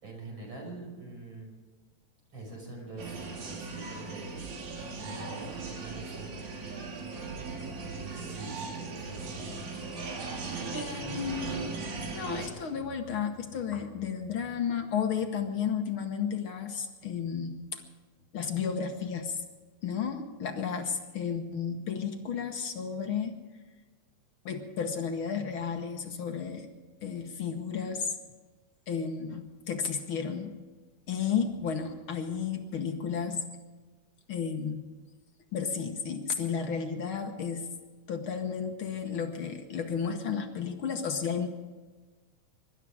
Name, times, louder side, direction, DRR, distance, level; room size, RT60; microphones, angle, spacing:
voice 1, 0.0-1.5 2.3-4.4 4.9-6.4 7.9-9.7, right 2 dB, 40° right, 0 dB, 5.9 m, -44 dB
sound 1, 3.0-12.5, right 4 dB, 75° right, 3.9 m, -38 dB
voice 2, 10.7-11.7 12.1-17.8 18.3-19.4 19.8-23.4 24.4-26.7 27.0-28.1 28.9-30.5 31.1-33.4 34.3-34.8 35.5-37.7 38.1-41.5, left 6 dB, 55° left, 5 dB, 1.6 m, -33 dB
23.0 x 12.5 x 4.9 m, 1.4 s
omnidirectional pair, 3.3 m